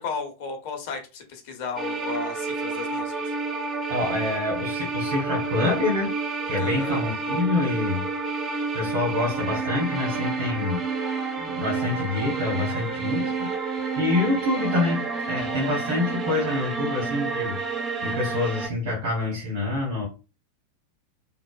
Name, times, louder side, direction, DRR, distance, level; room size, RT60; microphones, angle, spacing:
voice 1, 0.0-3.3 6.6-7.0, left 5 dB, 50° left, 0.8 m, -34 dB
sound 1, 1.8-18.7, right 4 dB, 25° right, 0.6 m, -29 dB
voice 2, 3.9-6.1 6.5-8.0 8.7-10.9 11.4-13.5 14.0-17.6 18.0-20.1, left 2 dB, 55° right, 1.2 m, -26 dB
3.3 x 2.1 x 2.3 m
figure-of-eight pair, 90°, 0 cm